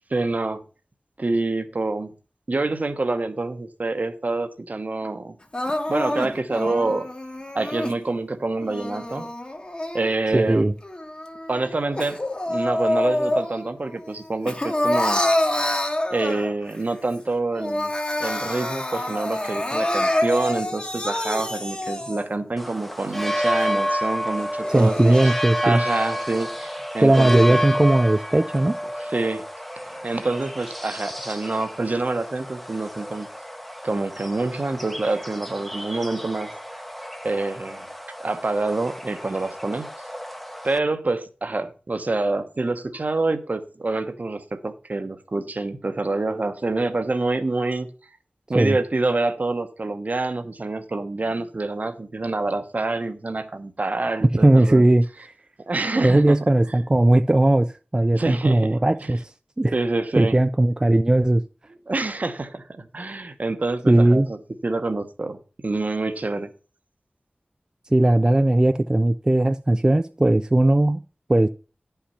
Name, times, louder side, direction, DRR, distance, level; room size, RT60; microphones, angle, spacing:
voice 1, 0.1-0.6 1.2-2.1 2.5-5.4 5.7-7.1 7.5-9.3 9.9-10.7 11.5-12.2 12.5-15.2 16.1-17.9 18.2-25.3 25.6-27.6 29.1-29.4 29.8-33.3 33.8-36.8 37.2-37.9 38.2-39.9 40.6-47.9 48.5-54.9 55.7-56.4 58.1-59.1 59.7-60.3 61.9-64.4 64.6-66.5, right 2 dB, 55° right, 1.1 m, -26 dB
Crying sobbing, 5.5-8.0 8.6-10.4 10.8-13.7 14.1-16.7 17.1-17.2 17.5-22.4 22.9-23.0 23.6-23.7 24.4-25.3, left 1 dB, 30° left, 1.4 m, -27 dB
voice 2, 10.3-10.7 24.7-25.8 27.0-28.7 48.5-48.8 54.4-55.3 56.0-59.3 59.6-59.7 60.2-61.4 63.9-64.3 67.9-71.0 71.3-71.5, right 1 dB, 25° right, 0.4 m, -18 dB
sound 1, 22.6-40.8, equal, 5° left, 0.9 m, -30 dB
9.9 x 5.8 x 5.7 m
wide cardioid pair, 75°, 3 cm